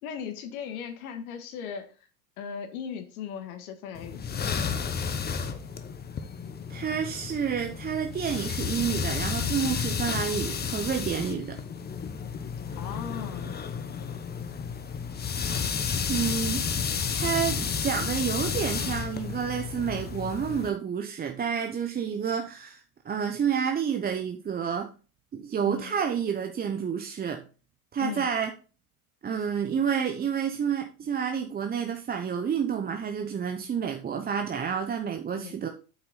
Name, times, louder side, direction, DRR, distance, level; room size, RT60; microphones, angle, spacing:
voice 1, 0.0-1.9 2.4-4.6 12.8-13.6 25.6-26.0 28.0-28.3 35.3-35.6, left 7 dB, 70° left, 1.9 m, -38 dB
sound 1, 4.0-20.7, left 6 dB, 20° left, 1.0 m, -32 dB
voice 2, 6.7-11.6 16.1-24.9 25.3-27.4 27.9-28.5 29.2-35.7, right 7 dB, 20° right, 0.8 m, -29 dB
8.4 x 5.9 x 4.0 m
hypercardioid pair, 100°, 45 cm